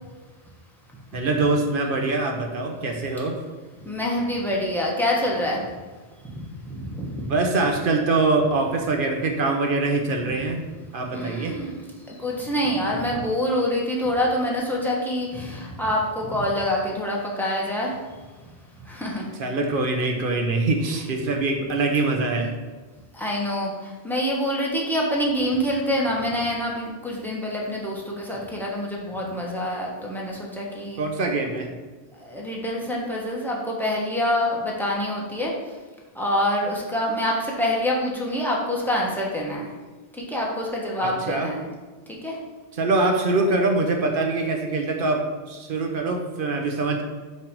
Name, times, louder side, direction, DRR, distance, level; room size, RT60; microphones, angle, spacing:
voice 1, 1.1-3.4 7.2-10.6 10.9-11.6 19.4-22.5 31.0-31.7 41.0-41.5 42.8-47.0, right 3 dB, 55° right, 3 dB, 0.9 m, -24 dB
voice 2, 3.8-5.6 6.2-7.2 11.1-11.8 12.1-18.0 18.9-19.2 23.1-31.0 32.2-35.5 36.1-39.7 40.2-41.6 42.1-42.4, left 1 dB, ahead, -4 dB, 1.1 m, -26 dB
5.7 x 3.3 x 5.2 m, 1.3 s
omnidirectional pair, 1.1 m